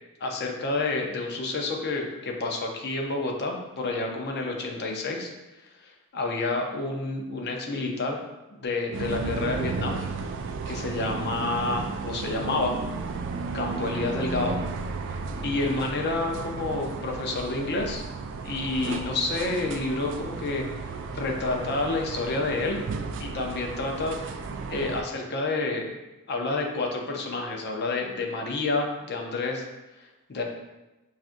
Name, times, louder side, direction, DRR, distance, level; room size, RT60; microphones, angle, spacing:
voice 1, 0.2-5.3 5.8-8.2 8.5-10.0 10.7-12.8 13.5-14.6 15.4-18.0 18.4-20.8 21.1-22.8 23.2-24.2 24.7-26.0 26.3-29.6 30.3-30.4, left 3 dB, 50° left, 1 dB, 0.6 m, -29 dB
sound 1, 8.9-25.0, right 4 dB, 55° right, 0.3 m, -34 dB
5.7 x 2.4 x 2.5 m, 1.0 s
head